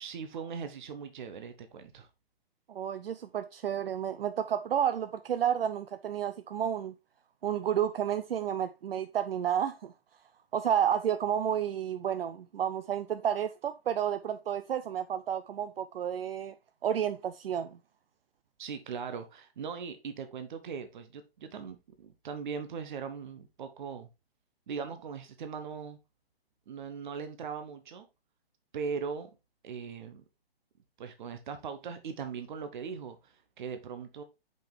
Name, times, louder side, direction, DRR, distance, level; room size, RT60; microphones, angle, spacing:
voice 1, 0.0-2.1 18.6-24.1 24.7-26.0 26.7-28.1 28.7-29.4 29.6-30.2 31.0-34.2, right 6 dB, 50° right, 1.0 m, -39 dB
voice 2, 2.7-6.9 7.4-9.9 10.5-16.5 16.8-17.8, right 9 dB, 70° right, 0.5 m, -31 dB
5.6 x 5.4 x 3.4 m
hypercardioid pair, 145°, 31 cm